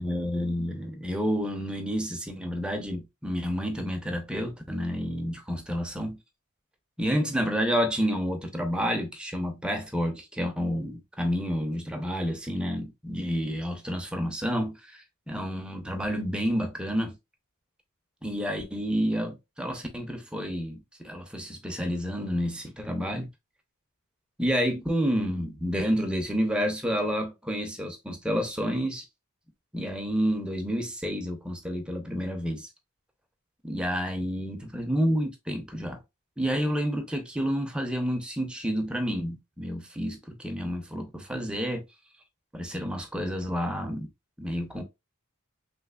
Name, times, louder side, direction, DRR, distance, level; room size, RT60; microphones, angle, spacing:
voice 1, 0.0-6.2 7.0-17.1 18.2-23.3 24.4-29.1 29.7-32.7 33.6-36.0 36.4-41.8 42.5-44.1 44.4-44.8, equal, 5° right, 0.6 m, -29 dB
3.2 x 3.2 x 2.3 m
head